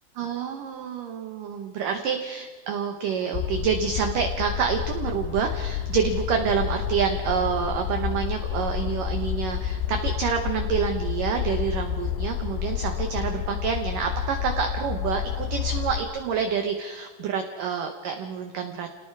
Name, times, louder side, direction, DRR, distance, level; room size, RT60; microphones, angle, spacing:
voice 1, 0.2-18.9, right 6 dB, 75° right, 5 dB, 2.0 m, -28 dB
sound 1, 3.3-16.0, left 10 dB, 80° left, 3.1 m, -29 dB
29.0 x 19.0 x 4.8 m, 1.4 s
omnidirectional pair, 5.5 m